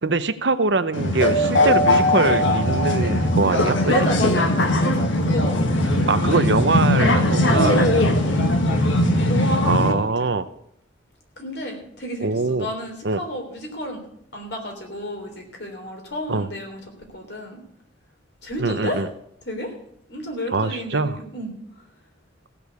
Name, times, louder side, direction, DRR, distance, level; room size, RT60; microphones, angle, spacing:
voice 1, 0.0-3.9 6.1-7.8 9.7-10.4 12.2-12.7 13.0-13.2 16.3-16.5 18.6-19.1 20.5-21.2, right 3 dB, 65° right, 12 dB, 0.8 m, -23 dB
sound 1, 0.9-9.9, left 1 dB, 85° left, 1.5 m, -19 dB
voice 2, 3.9-6.4 7.4-8.4 9.2-10.3 11.4-14.0 14.3-16.8 17.1-17.6 18.4-19.0 19.5-19.7 20.1-21.5, equal, 60° left, 2 dB, 3.6 m, -29 dB
16.0 x 6.9 x 8.2 m, 0.70 s
head